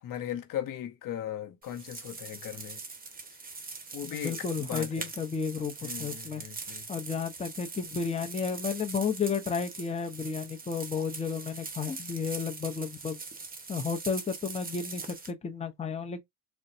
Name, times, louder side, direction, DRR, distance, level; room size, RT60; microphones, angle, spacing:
voice 1, 0.0-2.8 3.9-5.1 5.8-6.8, left 10 dB, 60° left, 0.7 m, -38 dB
sound 1, 1.6-15.3, right 4 dB, 25° right, 0.9 m, -42 dB
voice 2, 4.0-5.7 6.0-6.4 6.9-13.2 13.7-16.2, left 5 dB, 20° left, 0.7 m, -32 dB
3.9 x 2.2 x 2.5 m
cardioid pair, 85°, 36 cm